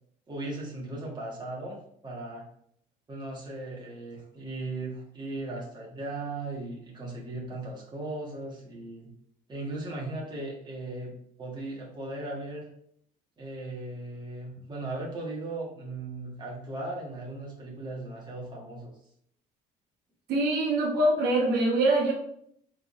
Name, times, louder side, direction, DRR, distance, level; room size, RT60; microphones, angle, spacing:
voice 1, 0.3-1.8 2.0-2.5 3.1-9.1 9.5-12.7 13.4-18.9, right 2 dB, 25° right, -3 dB, 1.7 m, -37 dB
voice 2, 20.3-22.1, right 2 dB, 75° right, -1 dB, 1.1 m, -24 dB
4.5 x 3.9 x 2.7 m, 0.67 s
cardioid pair, 110°, 17 cm